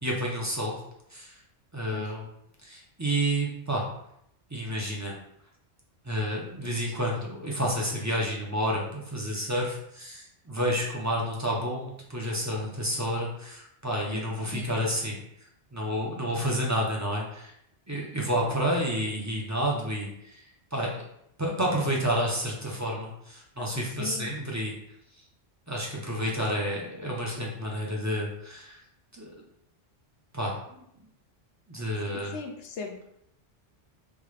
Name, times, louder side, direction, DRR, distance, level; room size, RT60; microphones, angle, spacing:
voice 1, 0.0-0.8 1.1-1.4 1.7-2.3 2.6-3.9 4.5-5.2 6.0-15.2 15.7-17.5 17.9-21.0 21.4-24.7 25.7-28.8 29.1-29.3 30.3-30.8 31.7-32.3, equal, 20° right, -2 dB, 0.5 m, -30 dB
voice 2, 24.0-24.3 32.1-33.2, left 5 dB, 80° left, 3 dB, 0.9 m, -39 dB
3.6 x 2.4 x 3.2 m, 0.75 s
omnidirectional pair, 1.1 m